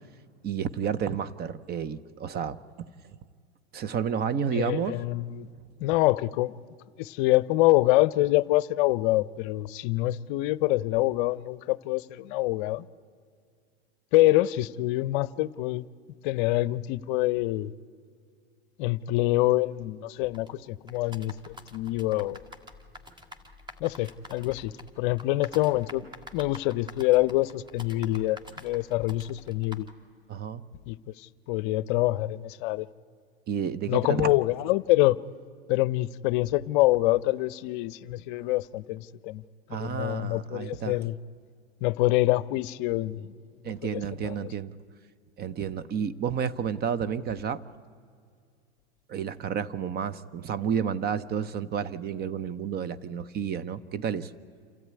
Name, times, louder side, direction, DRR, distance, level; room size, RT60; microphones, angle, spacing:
voice 1, 0.4-2.9 3.7-5.0 30.3-30.6 33.5-34.3 39.7-41.0 43.6-44.8 45.4-47.6 49.1-54.3, right 7 dB, 30° right, 0.8 m, -31 dB
voice 2, 4.5-5.5 5.8-6.6 7.0-12.8 14.1-15.8 16.2-17.7 18.8-22.4 23.8-26.1 26.3-29.9 30.9-32.9 33.9-35.2 35.7-39.4 39.7-41.2 41.8-43.3 43.9-44.5, left 17 dB, 55° left, 0.6 m, -26 dB
sound 1, 20.3-29.9, left 1 dB, 15° right, 1.8 m, -48 dB
27.5 x 13.5 x 9.5 m
hypercardioid pair, 105°, 30 cm